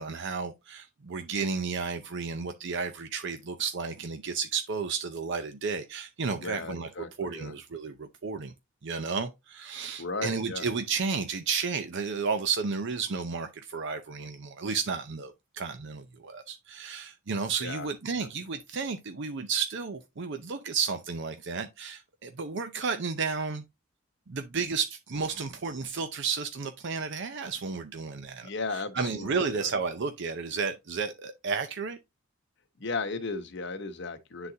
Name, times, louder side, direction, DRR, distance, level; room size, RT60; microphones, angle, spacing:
voice 1, 0.0-6.9 7.2-8.5 8.8-23.6 24.3-28.5 28.9-32.0, right 5 dB, 65° right, 0.6 m, -32 dB
voice 2, 6.4-7.6 10.0-10.7 17.6-17.9 18.2-18.3 28.4-29.7 32.8-34.5, left 3 dB, 65° left, 1.0 m, -36 dB
9.6 x 4.0 x 2.7 m
head